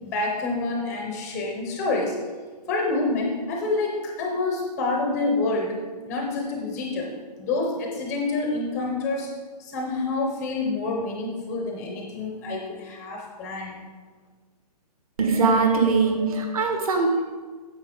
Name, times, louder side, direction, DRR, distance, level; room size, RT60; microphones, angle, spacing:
voice 1, 0.0-2.2 2.7-7.1 7.4-9.3 9.6-13.8, left 3 dB, 5° left, 1 dB, 0.5 m, -27 dB
voice 2, 15.2-17.2, right 4 dB, 60° right, 3 dB, 1.7 m, -21 dB
9.4 x 7.4 x 3.7 m, 1.4 s
hypercardioid pair, 170°, 21 cm